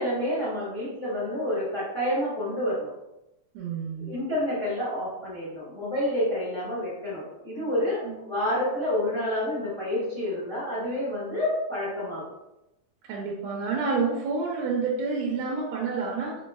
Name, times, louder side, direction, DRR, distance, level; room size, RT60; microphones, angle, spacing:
voice 1, 0.0-2.9 4.0-12.2, left 1 dB, 55° left, -10 dB, 0.8 m, -29 dB
voice 2, 3.5-4.2 8.0-8.2 13.1-16.4, right 4 dB, 80° right, -3 dB, 1.8 m, -29 dB
5.1 x 3.0 x 2.2 m, 0.93 s
omnidirectional pair, 3.4 m